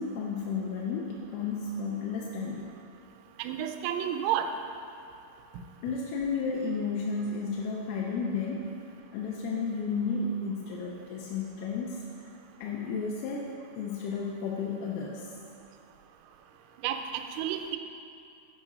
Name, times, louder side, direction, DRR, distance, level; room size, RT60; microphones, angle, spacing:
voice 1, 0.0-2.8 5.8-8.7 9.1-12.0 12.6-13.5 13.8-15.3, left 4 dB, 90° left, -2 dB, 3.2 m, -32 dB
voice 2, 3.4-4.5 16.8-17.8, right 10 dB, 85° right, 6 dB, 3.1 m, -31 dB
9.0 x 4.9 x 5.2 m, 2.5 s
omnidirectional pair, 5.6 m